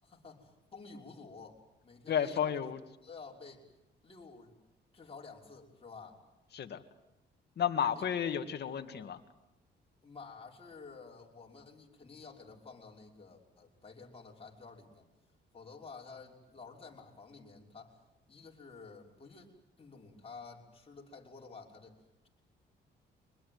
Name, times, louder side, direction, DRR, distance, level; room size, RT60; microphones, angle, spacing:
voice 1, 0.0-2.7 3.0-3.6 4.0-4.5 4.9-6.2 8.0-8.1 10.0-15.1 15.5-18.0 18.3-19.5 19.8-22.0, left 4 dB, 30° left, -1 dB, 5.8 m, -51 dB
voice 2, 2.1-2.8 6.5-6.8 7.6-9.2, left 8 dB, 55° left, 7 dB, 2.1 m, -32 dB
24.0 x 20.5 x 9.5 m, 0.86 s
cardioid pair, 90°, 20 cm